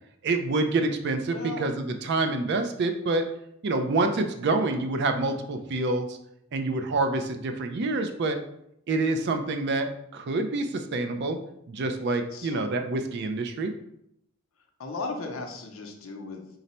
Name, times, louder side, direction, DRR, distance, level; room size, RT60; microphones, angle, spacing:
voice 1, 0.2-3.2 3.6-6.2 6.5-8.4 8.9-11.4 11.7-13.7, right 2 dB, 50° right, 7 dB, 0.4 m, -27 dB
voice 2, 1.3-1.6 12.3-12.7 14.8-16.5, left 3 dB, 65° left, 3 dB, 0.6 m, -36 dB
3.8 x 2.1 x 4.2 m, 0.75 s
head